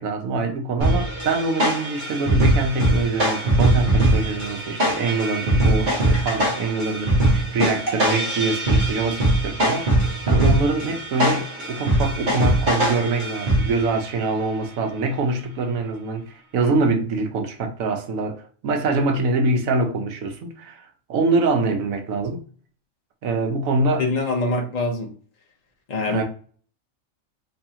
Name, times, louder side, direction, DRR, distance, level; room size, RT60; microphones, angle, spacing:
voice 1, 0.0-9.9 10.3-22.4 23.2-24.1 26.1-26.2, right 3 dB, 80° right, 1.2 m, -24 dB
sound 1, 0.8-14.0, right 1 dB, 35° right, 1.4 m, -21 dB
voice 2, 24.0-25.1 25.9-26.2, left 2 dB, 35° left, 0.7 m, -24 dB
3.6 x 3.2 x 2.8 m
omnidirectional pair, 1.4 m